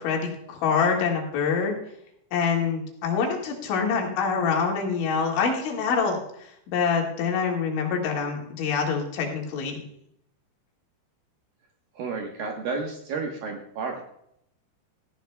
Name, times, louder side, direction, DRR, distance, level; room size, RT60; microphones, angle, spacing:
voice 1, 0.0-1.8 2.3-6.2 6.7-9.8, left 5 dB, 80° left, 0 dB, 4.3 m, -25 dB
voice 2, 12.0-14.0, right 4 dB, 65° right, 1 dB, 2.4 m, -31 dB
17.5 x 14.5 x 2.2 m, 0.75 s
omnidirectional pair, 5.3 m